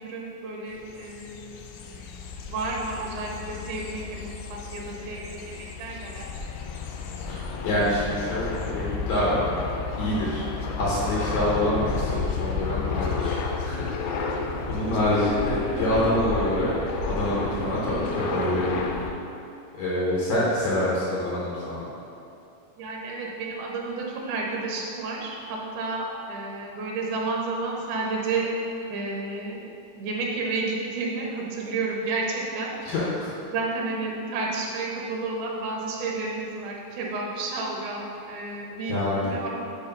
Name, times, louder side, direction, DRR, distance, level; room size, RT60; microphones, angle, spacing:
voice 1, 0.0-1.6 2.5-6.3 19.1-19.2 22.8-28.5 28.9-29.6 29.9-32.7 33.5-39.0 39.3-39.5, right 3 dB, 80° right, -2 dB, 2.2 m, -31 dB
sound 1, 0.8-19.1, left 4 dB, 85° left, 2.1 m, -31 dB
voice 2, 7.3-9.4 10.0-10.5 10.8-14.4 14.7-16.7 17.0-18.8 19.7-21.9 32.8-33.3 38.9-39.5, left 1 dB, 70° left, -7 dB, 2.2 m, -26 dB
6.7 x 3.1 x 5.2 m, 2.7 s
omnidirectional pair, 3.6 m